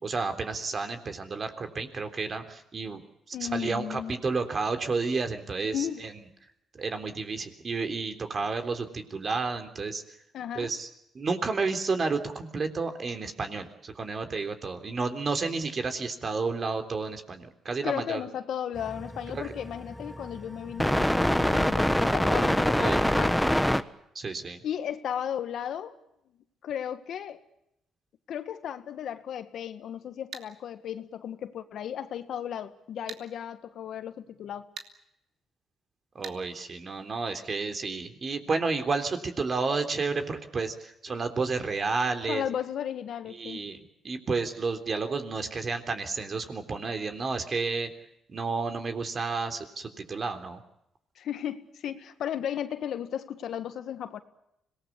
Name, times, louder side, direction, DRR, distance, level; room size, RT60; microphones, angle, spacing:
voice 1, 0.0-3.0 3.3-6.1 6.7-10.0 10.6-10.9 11.1-18.2 19.3-19.5 22.8-23.0 24.2-24.6 36.2-42.4 43.3-47.9 48.3-50.6, right 4 dB, 40° right, 7 dB, 3.6 m, -31 dB
voice 2, 3.3-4.1 5.7-6.0 10.3-10.7 17.8-23.4 24.6-26.0 26.6-27.4 28.3-34.7 42.3-43.6 51.2-54.2, left 9 dB, 70° left, 10 dB, 1.8 m, -35 dB
sound 1, 18.8-23.8, equal, ahead, 1.2 m, -25 dB
sound 2, 30.3-30.5 33.1-33.3 34.8-34.9 36.2-36.4, right 7 dB, 70° right, 2.7 m, -40 dB
26.0 x 19.0 x 8.5 m, 0.80 s
cardioid pair, 90°, 0 cm